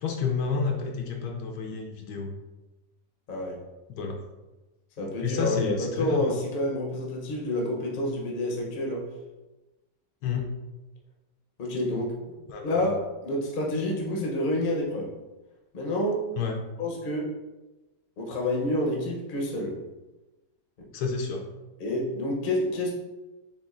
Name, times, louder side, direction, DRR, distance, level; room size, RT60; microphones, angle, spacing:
voice 1, 0.0-2.3 3.9-4.2 5.2-6.4 10.2-10.5 12.5-12.9 16.4-16.6 20.9-21.5, left 5 dB, 75° left, 2 dB, 1.1 m, -30 dB
voice 2, 5.0-9.0 11.6-12.4 12.6-15.1 15.7-16.2 16.8-17.3 18.2-19.8 20.8-20.9 21.8-22.9, left 1 dB, 45° left, -1 dB, 0.6 m, -28 dB
7.1 x 2.5 x 2.5 m, 1.1 s
omnidirectional pair, 2.0 m